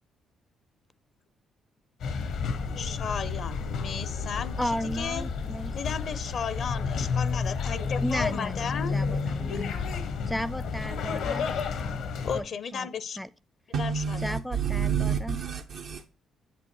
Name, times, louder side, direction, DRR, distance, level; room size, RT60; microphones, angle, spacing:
sound 1, 2.0-12.4, left 5 dB, 80° left, 1.0 m, -31 dB
voice 1, 2.8-5.2 5.7-9.0 12.2-13.2 13.8-14.3, left 6 dB, 65° left, 0.6 m, -34 dB
voice 2, 4.4-5.7 8.0-9.7 10.3-11.5 12.3-12.4 12.7-12.9 13.2-13.3 14.2-15.4, equal, 5° left, 0.4 m, -34 dB
voice 3, 13.7-16.1, right 7 dB, 75° right, 0.5 m, -29 dB
8.1 x 6.1 x 2.9 m
supercardioid pair, 70°, 0 cm